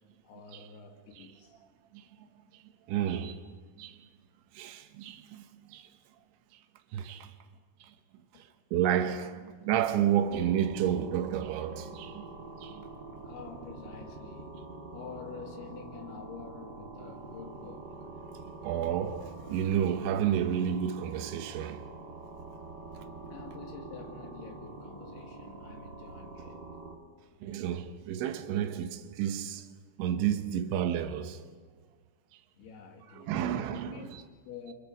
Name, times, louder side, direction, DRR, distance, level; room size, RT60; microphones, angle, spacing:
voice 1, 0.2-1.6 8.3-8.4 13.2-14.6 14.9-17.9 23.3-26.7 32.6-34.7, left 6 dB, 65° left, 3.5 m, -48 dB
voice 2, 1.9-2.3 2.5-2.6 2.9-4.1 4.5-5.9 6.5-6.6 6.9-7.3 7.8-7.9 8.3-12.3 12.6-12.9 18.6-21.9 27.4-29.7 30.0-31.4 32.3-32.4 33.2-34.2, right 10 dB, 80° right, 3.3 m, -31 dB
sound 1, 10.2-27.0, right 3 dB, 50° right, 1.3 m, -45 dB
29.0 x 24.0 x 5.1 m
omnidirectional pair, 5.4 m